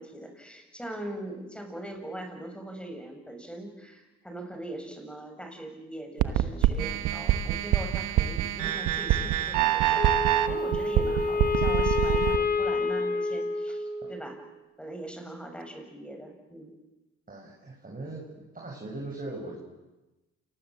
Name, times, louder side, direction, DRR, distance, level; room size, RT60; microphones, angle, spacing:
voice 1, 0.0-14.4 14.8-16.7, right 1 dB, 5° left, 4 dB, 7.4 m, -41 dB
sound 1, 6.2-12.4, right 12 dB, 85° right, 1.4 m, -25 dB
Wind instrument woodwind instrument, 9.9-14.4, left 3 dB, 30° left, 3.0 m, -28 dB
voice 2, 17.3-18.3 18.5-19.6, right 2 dB, 30° right, -1 dB, 6.9 m, -39 dB
28.5 x 20.5 x 7.8 m, 1.1 s
supercardioid pair, 60°, 30 cm